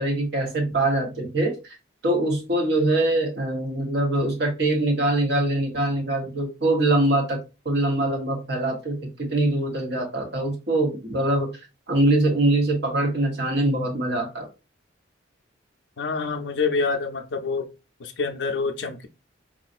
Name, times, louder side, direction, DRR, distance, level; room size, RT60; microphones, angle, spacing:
voice 1, 0.0-1.7 2.0-7.4 7.6-14.5, right 2 dB, 60° right, 1.0 m, -23 dB
voice 2, 16.0-17.7 18.0-19.1, left 4 dB, 60° left, 0.5 m, -26 dB
3.8 x 2.4 x 2.5 m
head